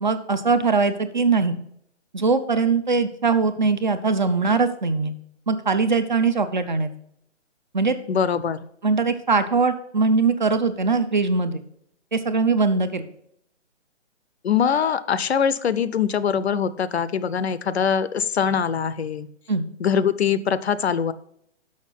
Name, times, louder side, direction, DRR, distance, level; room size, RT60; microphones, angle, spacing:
voice 1, 0.0-1.6 2.1-5.1 5.5-6.9 7.7-8.0 8.8-11.6 12.1-13.0 19.5-19.6, right 4 dB, 40° right, 11 dB, 0.5 m, -21 dB
voice 2, 8.1-8.6 14.4-19.3 19.8-21.1, left 7 dB, 60° left, 15 dB, 0.6 m, -23 dB
6.4 x 6.0 x 5.5 m, 0.71 s
hypercardioid pair, 175°, 36 cm